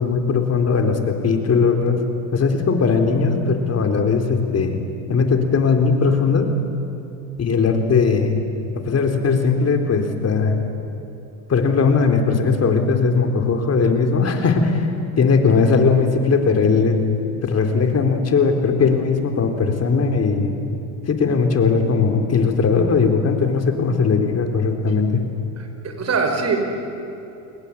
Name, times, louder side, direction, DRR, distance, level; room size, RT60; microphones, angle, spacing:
voice 1, 0.0-2.0 2.3-4.8 5.1-6.5 7.4-8.4 8.7-10.6 11.5-14.9 15.2-17.0 17.4-20.5 21.1-25.2, left 5 dB, 35° left, 5 dB, 3.8 m, -18 dB
voice 2, 25.6-26.6, right 5 dB, 35° right, 5 dB, 5.7 m, -23 dB
29.5 x 21.0 x 8.6 m, 2.9 s
supercardioid pair, 95°, 43 cm